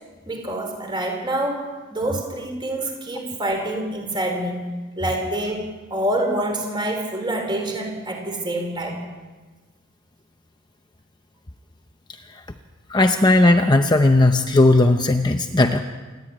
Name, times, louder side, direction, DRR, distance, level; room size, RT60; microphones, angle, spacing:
voice 1, 0.3-4.6 5.0-9.0, right 1 dB, 20° right, 3 dB, 4.4 m, -26 dB
voice 2, 12.9-15.8, left 2 dB, 20° left, 6 dB, 0.7 m, -16 dB
28.0 x 12.0 x 8.8 m, 1.3 s
head